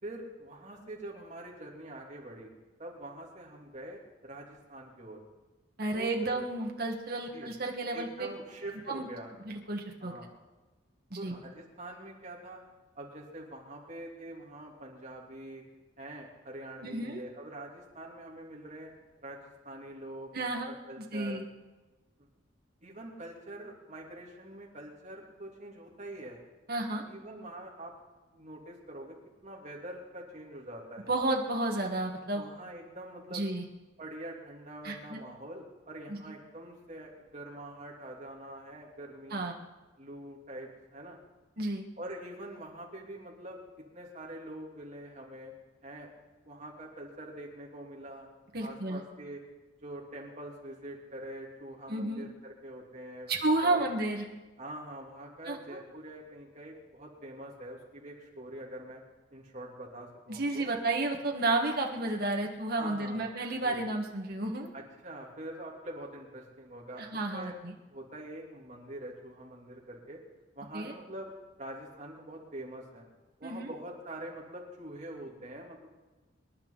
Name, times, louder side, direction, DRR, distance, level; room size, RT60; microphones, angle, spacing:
voice 1, 0.0-2.5 2.8-5.2 5.9-6.4 7.3-7.5 7.9-9.3 10.0-10.3 11.2-12.6 12.9-15.6 16.0-18.9 19.2-21.4 22.2-22.3 22.8-26.4 27.0-27.9 28.3-29.1 29.4-31.2 32.3-33.4 34.0-39.4 40.0-41.2 42.0-43.6 43.9-45.5 45.8-46.1 46.4-48.3 48.6-49.4 49.8-53.3 53.6-53.8 54.6-59.0 59.3-60.7 62.8-63.2 63.6-63.8 64.7-67.6 67.9-70.2 70.5-71.3 71.6-73.0 73.4-75.9, right 1 dB, 40° right, -2 dB, 3.0 m, -44 dB
voice 2, 5.8-8.3 8.9-9.1 9.4-10.1 11.1-11.3 16.8-17.2 20.3-20.7 21.1-21.5 26.7-27.0 31.1-32.4 33.3-33.6 34.8-35.2 36.1-36.2 39.3-39.6 41.6-41.8 48.5-49.0 51.9-52.2 53.3-54.2 55.4-55.6 60.3-64.7 67.0-67.7 70.7-70.9 73.4-73.7, right 2 dB, 55° right, 1 dB, 1.7 m, -31 dB
26.0 x 11.0 x 4.0 m, 1.2 s
head